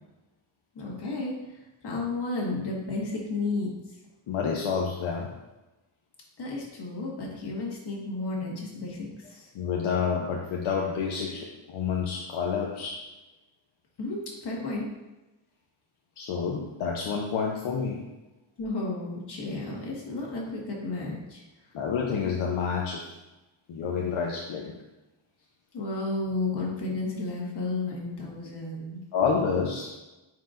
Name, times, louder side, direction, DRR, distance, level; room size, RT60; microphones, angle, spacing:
voice 1, 0.8-1.3 1.8-3.7 6.4-9.5 14.0-14.9 18.6-21.4 25.7-29.0, left 3 dB, 55° left, -2 dB, 1.8 m, -32 dB
voice 2, 4.3-5.3 9.5-13.0 16.2-18.0 21.7-23.1 23.7-24.7 29.1-29.9, left 6 dB, 75° left, -1 dB, 0.9 m, -29 dB
9.3 x 4.7 x 2.6 m, 1.0 s
wide cardioid pair, 155°, 48 cm